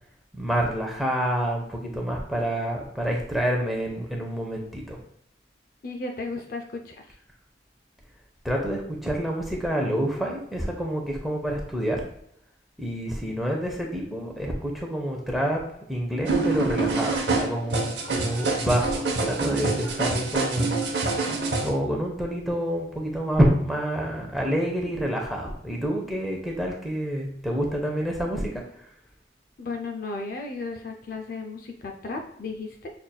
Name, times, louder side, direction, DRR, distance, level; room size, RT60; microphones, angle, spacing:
voice 1, 0.3-5.0 8.4-12.0 12.8-15.6 15.9-20.8 21.6-28.6, equal, ahead, -1 dB, 0.6 m, -27 dB
voice 2, 5.8-7.2 29.6-32.9, left 3 dB, 50° left, 3 dB, 0.4 m, -34 dB
sound 1, 16.3-21.7, right 3 dB, 75° right, 0.8 m, -26 dB
5.6 x 2.5 x 2.3 m, 0.72 s
head